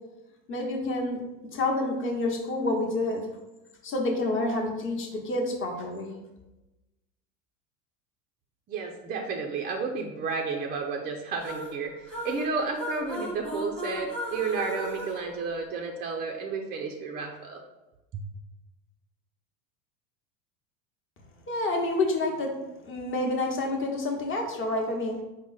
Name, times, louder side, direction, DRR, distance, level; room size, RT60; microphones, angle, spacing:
voice 1, 0.5-1.2 1.5-3.2 3.8-6.2 21.5-22.5 22.8-25.2, left 2 dB, 30° left, 1 dB, 0.9 m, -28 dB
voice 2, 8.7-11.9 12.2-17.6 18.1-18.2, right 4 dB, 25° right, 2 dB, 0.3 m, -32 dB
sound 1, 11.4-16.1, equal, 5° left, 0.9 m, -37 dB
4.7 x 2.1 x 3.9 m, 1.0 s
supercardioid pair, 105°, 42 cm